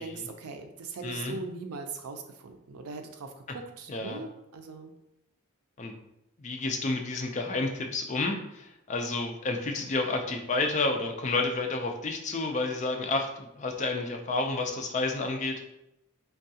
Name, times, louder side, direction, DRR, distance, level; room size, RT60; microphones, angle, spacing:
voice 1, 0.0-4.9, right 4 dB, 90° right, 5 dB, 0.4 m, -40 dB
voice 2, 1.0-1.4 3.9-4.2 5.8-5.9 6.4-15.6, left 3 dB, 35° left, 3 dB, 0.3 m, -30 dB
3.5 x 2.3 x 2.7 m, 0.85 s
head